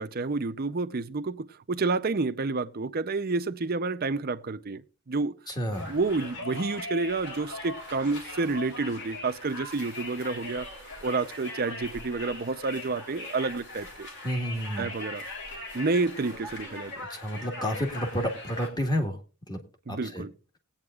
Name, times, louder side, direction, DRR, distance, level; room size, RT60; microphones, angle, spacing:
voice 1, 0.0-5.3 5.9-10.7 11.0-14.1 14.8-15.2 15.7-16.9 19.9-20.3, right 3 dB, 45° right, 0.6 m, -29 dB
voice 2, 5.5-5.9 14.2-14.9 17.1-19.2 19.5-19.6 19.9-20.2, equal, 20° left, 1.6 m, -30 dB
Conversation, 5.7-18.7, left 2 dB, 50° left, 3.3 m, -40 dB
19.5 x 8.8 x 2.4 m
head